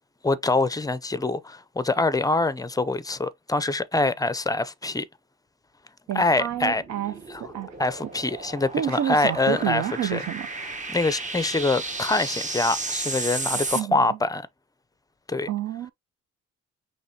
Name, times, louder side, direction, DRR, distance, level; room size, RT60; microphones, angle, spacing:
voice 1, 0.2-5.1 6.1-6.8 7.3-7.4 7.8-9.8 10.1-10.2 10.9-14.5 15.3-15.5, left 2 dB, 10° left, 0.5 m, -24 dB
voice 2, 6.1-7.7 8.7-10.5 13.7-14.2 15.5-15.9, right 11 dB, 65° right, 0.6 m, -29 dB
sound 1, 6.4-13.8, right 3 dB, 25° right, 1.0 m, -34 dB
6.0 x 3.0 x 2.8 m
cardioid pair, 90°, 30 cm